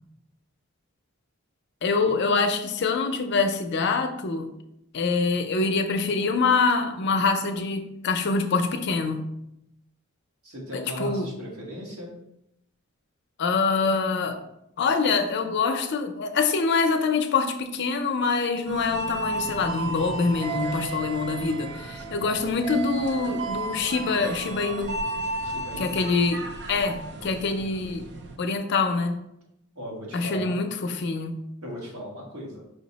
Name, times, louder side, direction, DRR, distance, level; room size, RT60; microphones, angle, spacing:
voice 1, 1.8-4.5 4.9-9.3 10.7-11.3 13.4-14.4 14.8-25.0 25.8-28.1 28.4-29.2 30.1-31.4, left 4 dB, 55° left, 6 dB, 0.4 m, -25 dB
voice 2, 10.4-12.1 22.0-22.2 25.4-26.1 29.7-30.6 31.6-32.6, equal, 85° right, -2 dB, 1.2 m, -37 dB
sound 1, 18.7-28.3, right 3 dB, 55° right, 0.4 m, -34 dB
5.0 x 2.0 x 3.9 m, 0.81 s
head